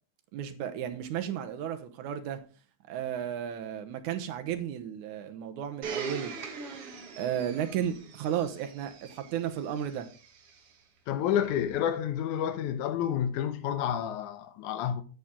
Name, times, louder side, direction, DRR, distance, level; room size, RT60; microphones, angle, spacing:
voice 1, 0.3-2.4 2.9-6.3 7.2-10.1, right 9 dB, 80° right, 2.4 m, -33 dB
Domestic sounds home sounds, 5.8-10.7 11.4-11.5, right 5 dB, 55° right, 1.9 m, -42 dB
voice 2, 11.1-15.0, left 9 dB, 80° left, 2.3 m, -29 dB
9.1 x 8.1 x 3.7 m
omnidirectional pair, 3.5 m